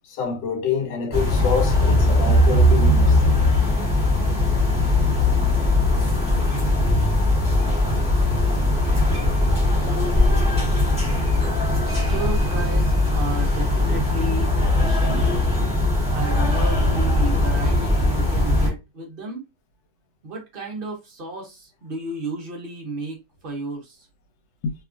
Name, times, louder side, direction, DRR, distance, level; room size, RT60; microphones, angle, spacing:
voice 1, 0.0-3.2 11.7-12.1 24.6-24.7, left 6 dB, 80° left, 1.3 m, -27 dB
sound 1, 1.1-18.7, left 1 dB, 5° right, 0.9 m, -19 dB
voice 2, 11.8-12.9 13.1-15.3 16.1-19.4 20.2-24.1, right 2 dB, 60° right, 0.5 m, -33 dB
2.8 x 2.3 x 2.4 m
omnidirectional pair, 1.9 m